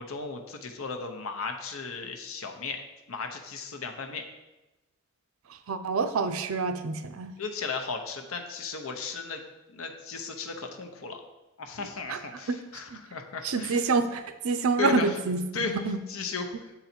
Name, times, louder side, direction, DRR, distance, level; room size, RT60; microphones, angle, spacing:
voice 1, 0.0-2.8 3.1-4.2 7.4-9.4 9.7-11.2 11.6-13.8 14.8-15.2 15.5-15.7 16.1-16.7, left 4 dB, 75° left, 5 dB, 0.8 m, -35 dB
voice 2, 5.5-7.3 12.1-12.2 12.5-12.6 12.9-13.0 13.4-16.0, right 4 dB, 80° right, 9 dB, 0.5 m, -27 dB
7.2 x 4.0 x 4.3 m, 1.0 s
head